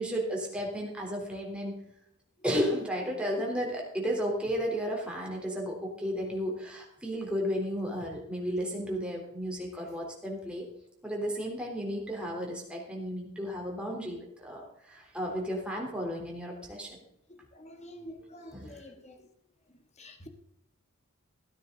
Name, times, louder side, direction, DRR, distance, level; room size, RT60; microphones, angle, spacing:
voice 1, 0.0-1.8 2.4-10.7 11.0-17.0 18.5-18.8, equal, 5° right, -1 dB, 3.5 m, -33 dB
voice 2, 17.3-19.3 20.0-20.3, left 1 dB, 30° left, 6 dB, 1.6 m, -48 dB
16.0 x 9.9 x 4.0 m, 0.77 s
head